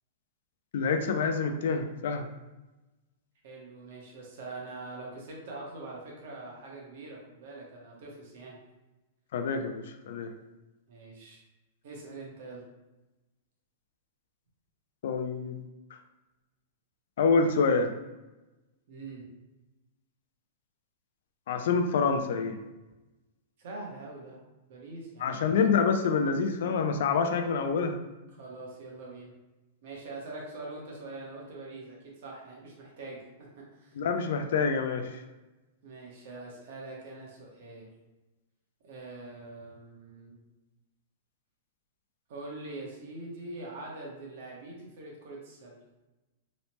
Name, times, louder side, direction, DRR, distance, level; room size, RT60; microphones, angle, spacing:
voice 1, 0.7-2.3 9.3-10.3 15.0-15.6 17.2-17.9 21.5-22.6 25.2-28.0 34.0-35.2, left 5 dB, 65° left, 6 dB, 0.3 m, -27 dB
voice 2, 3.4-8.6 10.9-11.4 11.8-12.6 18.9-19.3 23.6-24.4 24.7-25.4 28.3-29.3 29.8-34.0 35.8-37.9 38.8-40.4 42.3-45.8, right 2 dB, 55° right, -2 dB, 0.8 m, -43 dB
3.1 x 2.0 x 2.9 m, 1.1 s
supercardioid pair, 170°, 0 cm